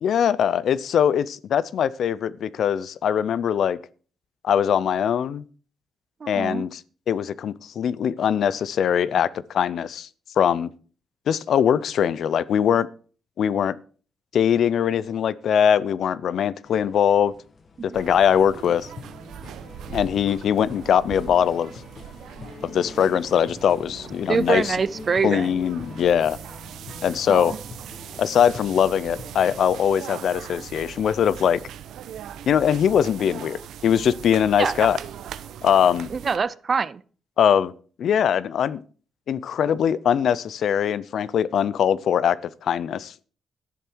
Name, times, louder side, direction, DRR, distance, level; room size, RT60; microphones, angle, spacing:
voice 1, 0.0-3.8 4.4-5.4 6.3-6.8 7.1-10.1 10.4-10.7 11.3-12.9 13.4-13.8 14.3-17.3 17.9-18.9 19.9-21.7 22.6-24.8 25.2-26.4 27.0-27.5 28.2-31.6 32.5-35.0 35.6-36.1 37.4-37.7 38.0-38.8 39.3-42.4 42.6-43.3, left 8 dB, 55° left, 0.5 m, -21 dB
voice 2, 6.2-6.6 17.9-18.0 24.3-25.5 27.3-27.6 34.6-34.9 36.1-37.0, right 5 dB, 30° right, 0.5 m, -24 dB
sound 1, 16.6-29.6, left 4 dB, 35° left, 1.4 m, -44 dB
sound 2, 17.9-36.4, right 9 dB, 80° right, 1.0 m, -40 dB
12.0 x 10.5 x 4.6 m
cardioid pair, 165°, 0 cm